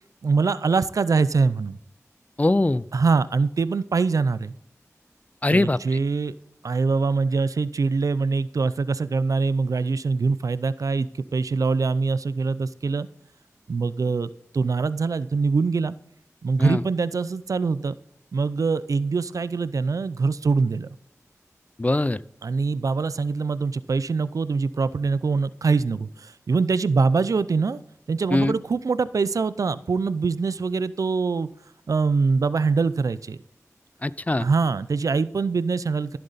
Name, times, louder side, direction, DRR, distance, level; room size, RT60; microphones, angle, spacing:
voice 1, 0.2-1.8 2.9-4.5 5.5-6.3 6.6-13.1 13.7-16.0 16.4-18.0 18.3-20.9 22.4-27.8 28.1-31.5 31.9-33.4 34.4-36.2, right 4 dB, 80° right, 16 dB, 0.5 m, -23 dB
voice 2, 2.4-2.8 5.4-5.8 16.6-16.8 21.8-22.2 28.3-28.5 34.0-34.5, left 2 dB, 25° left, 19 dB, 0.4 m, -21 dB
14.0 x 7.9 x 4.1 m, 0.73 s
cardioid pair, 40°, 6 cm